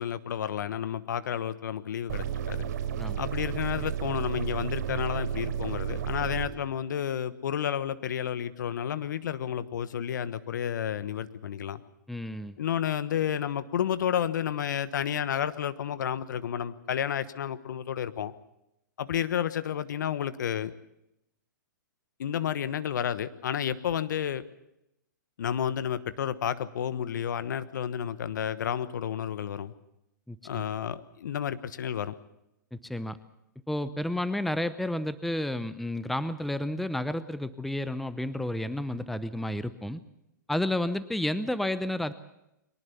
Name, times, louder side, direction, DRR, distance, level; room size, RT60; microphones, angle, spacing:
voice 1, 0.0-2.7 3.1-11.8 12.6-18.3 19.0-20.7 22.2-24.4 25.4-29.7 30.4-32.1, left 9 dB, 65° left, 13 dB, 1.3 m, -31 dB
sound 1, 2.1-6.5, right 9 dB, 55° right, 5.6 m, -32 dB
voice 2, 12.1-12.6 30.3-30.6 32.7-33.2 33.7-40.0 40.5-42.1, left 1 dB, ahead, 14 dB, 0.7 m, -31 dB
23.0 x 19.0 x 7.0 m, 0.87 s
hypercardioid pair, 125°, 11 cm